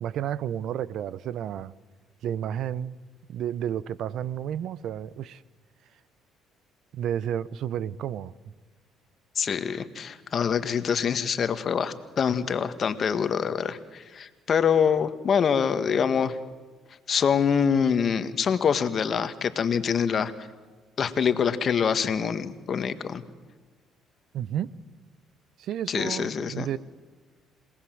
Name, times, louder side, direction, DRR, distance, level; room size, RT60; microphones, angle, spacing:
voice 1, 0.0-1.7 2.2-3.0 3.3-5.4 6.9-8.3 24.3-24.7 25.6-26.8, right 10 dB, 65° right, 0.7 m, -31 dB
voice 2, 9.4-16.3 17.1-20.3 21.0-23.2 25.9-26.7, left 7 dB, 50° left, 1.8 m, -25 dB
27.5 x 19.0 x 7.9 m
supercardioid pair, 75°, 0 cm